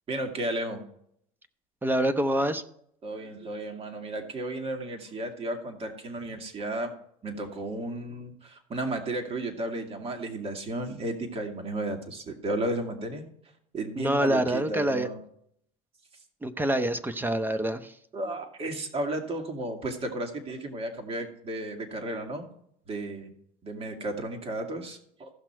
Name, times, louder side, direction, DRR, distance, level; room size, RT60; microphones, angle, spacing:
voice 1, 0.1-0.8 3.0-6.9 7.2-13.3 13.7-15.2 16.1-16.2 18.1-22.5 22.9-23.3 23.6-25.3, right 1 dB, 35° right, 4 dB, 2.3 m, -33 dB
voice 2, 1.8-2.6 14.0-15.1 16.4-17.9, right 1 dB, 10° right, 11 dB, 0.9 m, -26 dB
15.5 x 6.0 x 4.5 m, 0.70 s
hypercardioid pair, 90°, 18 cm